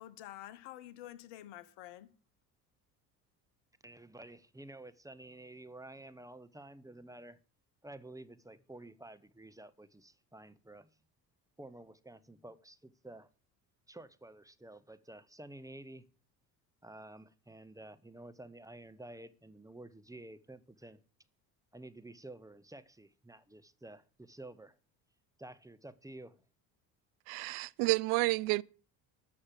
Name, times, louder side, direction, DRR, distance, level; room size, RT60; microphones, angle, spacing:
voice 1, 0.0-2.1, left 13 dB, 60° left, 1.3 m, -49 dB
voice 2, 3.8-7.4 7.8-10.9 11.6-13.3 13.9-16.1 16.8-21.0 21.7-24.8 25.4-26.4, right 1 dB, 5° right, 1.0 m, -51 dB
voice 3, 27.3-28.6, right 22 dB, 60° right, 0.5 m, -30 dB
13.0 x 6.5 x 7.6 m
hypercardioid pair, 60°, 49 cm